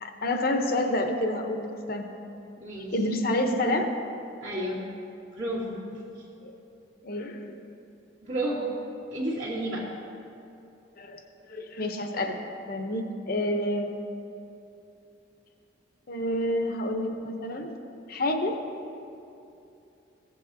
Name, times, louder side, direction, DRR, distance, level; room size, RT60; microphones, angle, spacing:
voice 1, 0.0-2.1 2.9-3.9 6.4-6.5 7.0-7.4 11.0-12.4 12.7-14.0 16.1-17.7 18.1-18.5, left 1 dB, 55° left, 4 dB, 0.8 m, -28 dB
voice 2, 2.6-2.9 4.4-4.8 5.3-6.2 8.2-8.8 9.1-9.9, right 1 dB, 70° right, -13 dB, 2.0 m, -31 dB
15.5 x 7.7 x 2.7 m, 2.7 s
head